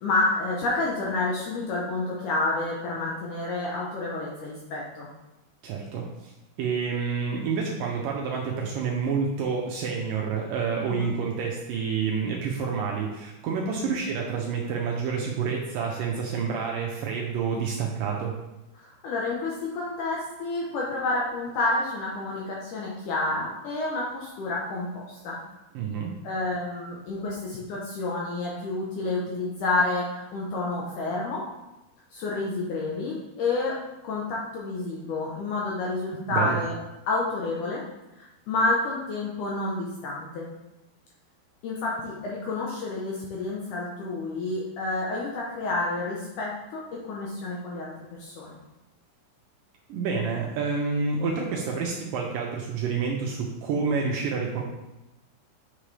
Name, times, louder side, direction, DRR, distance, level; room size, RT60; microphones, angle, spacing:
voice 1, 0.0-5.1 10.8-11.1 13.8-13.9 18.8-25.4 26.2-31.4 32.1-33.8 34.0-36.7 37.1-37.8 38.2-40.5 41.6-47.9 48.2-48.6, left 2 dB, 70° left, -3 dB, 2.0 m, -29 dB
voice 2, 5.6-6.3 6.6-18.4 25.7-26.2 36.3-36.6 49.9-54.6, right 5 dB, 75° right, -1 dB, 2.1 m, -28 dB
7.5 x 6.0 x 3.3 m, 0.98 s
omnidirectional pair, 4.6 m